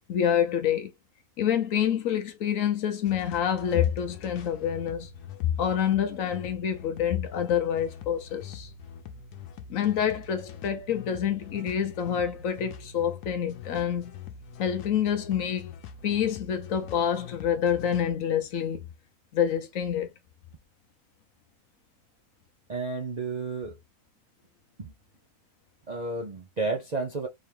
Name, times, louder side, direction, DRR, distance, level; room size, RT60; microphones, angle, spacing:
voice 1, 0.1-0.9 1.4-5.1 5.4-8.7 9.7-14.2 14.6-15.7 16.0-18.8 19.3-20.1, left 9 dB, 65° left, 1.0 m, -27 dB
sound 1, 3.1-18.1, left 7 dB, 90° left, 1.2 m, -44 dB
voice 2, 22.7-23.8 24.8-24.9 25.9-27.3, right 3 dB, 50° right, 0.5 m, -31 dB
3.7 x 2.9 x 3.3 m
omnidirectional pair, 1.6 m